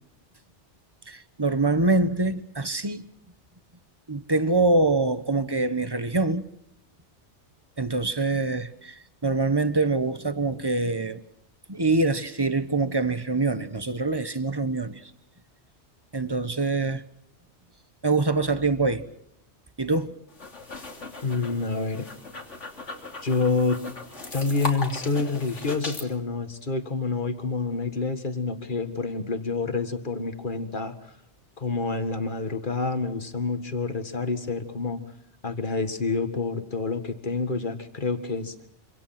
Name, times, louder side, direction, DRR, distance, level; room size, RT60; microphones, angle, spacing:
voice 1, 1.1-3.0 4.1-6.4 7.8-11.2 11.7-15.0 16.1-17.0 18.0-19.0 19.8-20.1, right 3 dB, 20° right, 1.2 m, -24 dB
sound 1, 20.3-26.1, left 2 dB, 90° left, 3.5 m, -38 dB
voice 2, 21.2-22.1 23.2-23.8 24.3-30.9 31.6-35.0 35.4-38.5, left 4 dB, 45° left, 2.0 m, -28 dB
26.5 x 26.0 x 5.9 m
omnidirectional pair, 1.2 m